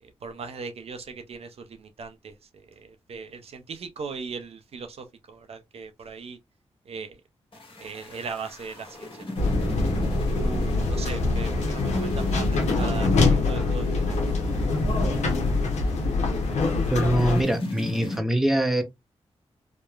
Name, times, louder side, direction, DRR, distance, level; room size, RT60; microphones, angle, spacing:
voice 1, 0.0-6.4 6.9-7.2 7.8-9.5 10.3-14.2, right 5 dB, 60° right, 0.5 m, -39 dB
sound 1, 7.5-18.2, left 1 dB, 50° left, 1.3 m, -36 dB
sound 2, 9.4-17.4, left 3 dB, 80° left, 0.6 m, -24 dB
voice 2, 16.9-18.8, right 1 dB, 5° right, 0.6 m, -23 dB
2.9 x 2.1 x 2.3 m
cardioid pair, 65°, 12 cm